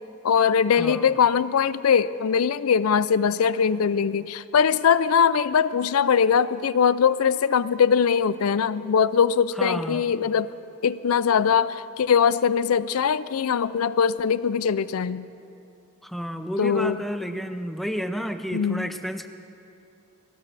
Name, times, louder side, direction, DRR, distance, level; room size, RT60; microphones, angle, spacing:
voice 1, 0.2-10.5 10.8-15.3 16.6-17.0 18.5-18.9, left 7 dB, 85° left, 16 dB, 0.4 m, -21 dB
voice 2, 0.8-1.1 9.6-10.1 16.0-19.3, equal, ahead, 8 dB, 0.6 m, -31 dB
22.5 x 17.0 x 3.4 m, 2.8 s
head